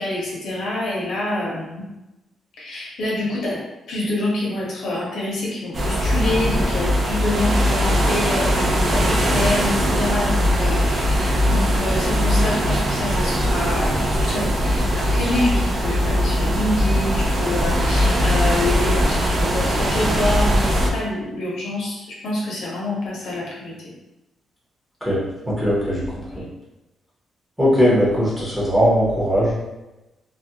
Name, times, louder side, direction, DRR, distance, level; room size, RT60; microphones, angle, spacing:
voice 1, 0.0-1.8 2.6-3.6 3.9-23.9, left 1 dB, 65° left, -4 dB, 0.8 m, -26 dB
sound 1, 5.7-20.9, equal, 30° right, 0.4 m, -20 dB
voice 2, 25.5-26.4 27.6-29.5, equal, 5° right, -8 dB, 0.8 m, -19 dB
2.4 x 2.1 x 2.7 m, 1.0 s
wide cardioid pair, 175°, 0 cm